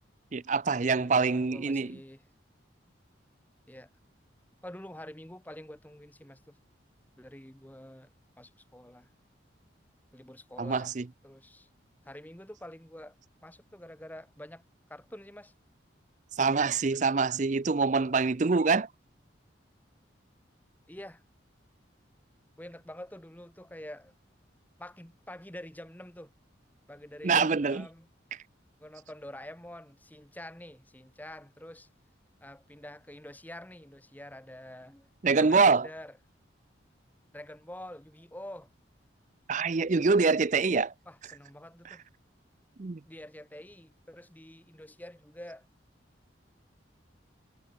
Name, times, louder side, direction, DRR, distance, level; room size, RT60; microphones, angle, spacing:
voice 1, 0.3-2.0 10.6-11.0 16.4-18.9 27.2-27.8 35.2-35.9 39.5-40.9 42.8-43.0, right 4 dB, 40° right, 0.5 m, -25 dB
voice 2, 0.8-2.3 3.7-3.9 4.6-6.6 7.2-8.1 8.4-9.1 10.1-10.9 11.2-11.7 12.0-13.2 13.4-14.6 14.9-15.5 20.9-21.2 22.6-24.1 24.8-26.3 26.9-28.1 28.8-31.9 32.4-35.1 35.4-36.1 37.3-38.7 41.0-42.0 43.0-45.7, left 1 dB, 10° left, 1.3 m, -47 dB
head